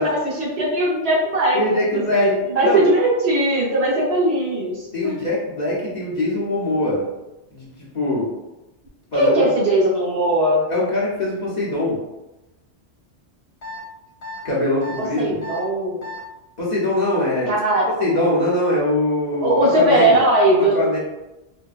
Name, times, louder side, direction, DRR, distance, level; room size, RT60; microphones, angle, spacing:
voice 1, 0.0-1.6 1.9-5.1 9.1-10.6 15.0-16.0 17.5-17.9 19.4-20.8, right 1 dB, 65° right, -5 dB, 1.1 m, -19 dB
voice 2, 1.5-2.3 2.6-2.8 4.9-7.1 7.5-8.3 9.1-9.5 10.7-12.0 14.4-15.4 16.6-17.5 17.9-20.2 20.6-21.0, left 1 dB, 45° left, -6 dB, 0.8 m, -22 dB
sound 1, 13.6-13.8 14.2-14.4 14.8-15.0 15.4-15.6 16.0-16.2, left 2 dB, 70° left, 1.2 m, -34 dB
4.3 x 2.1 x 2.3 m, 1.0 s
omnidirectional pair, 1.2 m